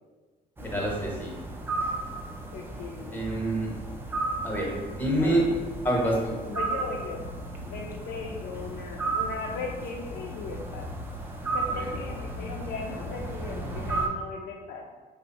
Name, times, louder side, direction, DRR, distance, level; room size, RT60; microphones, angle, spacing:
sound 1, 0.6-14.1, right 3 dB, 15° right, 0.4 m, -34 dB
voice 1, 0.7-1.3 3.1-3.7 4.4-5.4 5.8-6.3 11.7-11.9, right 1 dB, 10° left, -2 dB, 0.8 m, -27 dB
voice 2, 2.5-3.5 5.2-5.5 6.5-7.2 7.6-10.9 11.5-14.9, left 4 dB, 75° left, -1 dB, 0.4 m, -38 dB
3.2 x 2.0 x 4.0 m, 1.3 s
cardioid pair, 110°, 17 cm